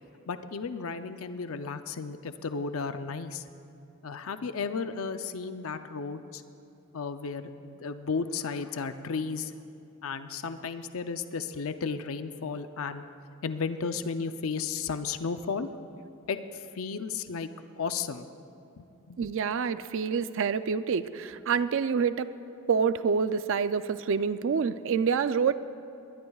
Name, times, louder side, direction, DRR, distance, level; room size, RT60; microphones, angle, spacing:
voice 1, 0.3-3.4 4.0-6.4 6.9-9.5 10.0-13.1 13.4-15.7 16.3-17.5 17.8-18.3 18.8-19.2, left 5 dB, 65° left, 10 dB, 0.5 m, -34 dB
voice 2, 19.2-22.3 22.7-25.5, right 6 dB, 60° right, 12 dB, 0.4 m, -27 dB
22.0 x 20.0 x 2.4 m, 2.7 s
head